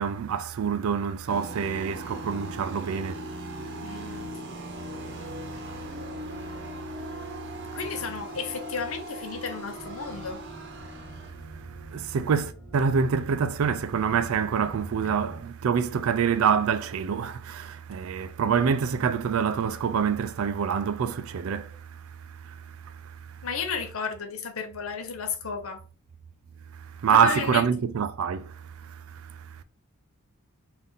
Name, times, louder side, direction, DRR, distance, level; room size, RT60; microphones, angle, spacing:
voice 1, 0.0-4.2 5.1-5.4 5.7-5.8 6.2-7.8 11.5-23.4 26.8-29.6, right 6 dB, 75° right, 0.4 m, -27 dB
sound 1, 1.3-11.6, equal, 55° right, 0.8 m, -39 dB
voice 2, 3.8-4.3 7.7-10.4 15.0-15.2 23.4-25.8 27.1-27.7, left 5 dB, 75° left, 0.8 m, -33 dB
sound 2, 9.8-15.4, right 1 dB, 5° left, 1.3 m, -44 dB
3.5 x 2.6 x 3.9 m
head